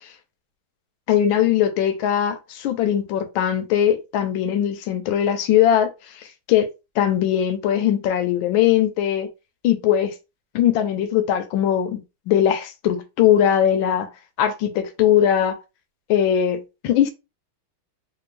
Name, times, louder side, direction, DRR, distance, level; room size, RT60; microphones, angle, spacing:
voice 1, 1.1-6.7 7.0-9.3 9.6-10.1 10.5-14.1 14.4-15.6 16.1-17.1, left 10 dB, 75° left, 1.3 m, -20 dB
3.4 x 2.6 x 3.1 m
omnidirectional pair, 2.3 m